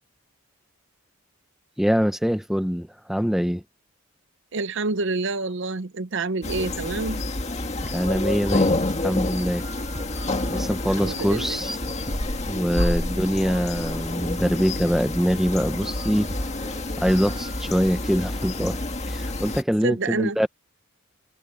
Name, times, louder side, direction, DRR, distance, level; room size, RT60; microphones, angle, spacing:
voice 1, 1.8-3.6 7.9-9.7 10.5-11.8 12.5-16.3 17.0-20.5, equal, ahead, 0.9 m, -24 dB
voice 2, 4.5-7.2 11.0-11.6 13.1-13.5 19.8-20.4, right 3 dB, 60° right, 0.7 m, -28 dB
sound 1, 6.4-19.6, left 2 dB, 30° left, 1.8 m, -28 dB
sound 2, 7.5-9.1 9.6-14.8 15.1-19.2, right 1 dB, 20° right, 5.5 m, -44 dB
head